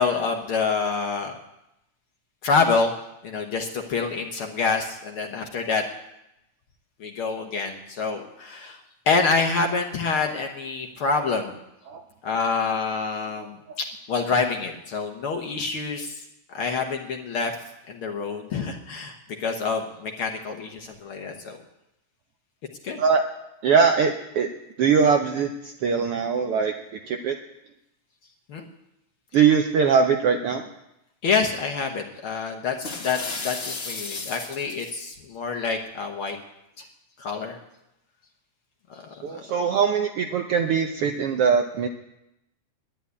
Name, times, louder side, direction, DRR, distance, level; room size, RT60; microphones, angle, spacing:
voice 1, 0.0-1.3 2.4-2.9 3.2-5.8 7.0-8.8 9.1-11.5 12.2-13.6 14.1-16.1 16.5-17.5 17.9-21.6 22.8-23.0 28.5-28.6 31.2-36.4 36.8-36.9 37.2-37.6 39.1-39.4, left 4 dB, 60° left, 3 dB, 1.6 m, -26 dB
voice 2, 23.6-24.5 24.8-26.7 27.1-27.4 29.3-30.6 39.2-41.9, right 6 dB, 75° right, 5 dB, 1.3 m, -21 dB
sound 1, 32.8-35.0, left 3 dB, 40° left, 0.9 m, -34 dB
11.0 x 9.8 x 9.4 m, 0.88 s
omnidirectional pair, 3.4 m